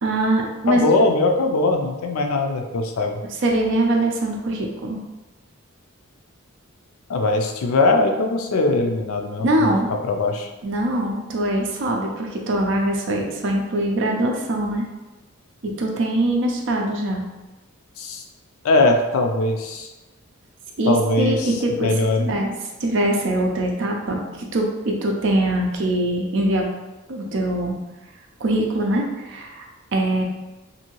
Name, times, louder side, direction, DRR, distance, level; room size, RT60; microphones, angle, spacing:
voice 1, 0.0-0.9 3.4-5.0 9.4-9.9 10.6-14.8 15.6-17.2 20.8-21.9 22.2-22.5 22.8-26.7 27.1-27.8 28.4-29.7 29.9-30.2, right 1 dB, 55° right, 1 dB, 0.5 m, -22 dB
voice 2, 0.7-3.2 7.1-9.7 10.1-10.5 18.0-18.2 18.6-19.9 20.9-22.3, left 2 dB, 80° left, 3 dB, 0.4 m, -21 dB
2.7 x 2.6 x 2.9 m, 1.1 s
head